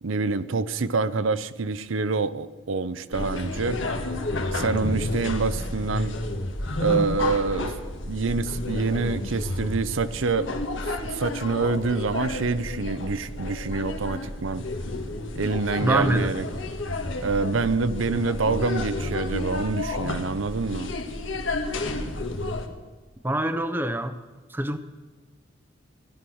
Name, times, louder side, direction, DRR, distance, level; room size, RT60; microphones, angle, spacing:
voice 1, 0.0-3.8 4.5-6.2 6.8-7.7 8.0-14.7 15.4-16.5 17.2-20.9, right 4 dB, 85° right, 13 dB, 0.7 m, -26 dB
sound 1, 3.1-22.7, left 2 dB, 80° left, 1.6 m, -31 dB
voice 2, 15.8-16.3 23.2-24.2 24.5-24.8, right 1 dB, 10° right, 10 dB, 0.7 m, -25 dB
16.0 x 11.5 x 6.2 m, 1.3 s
head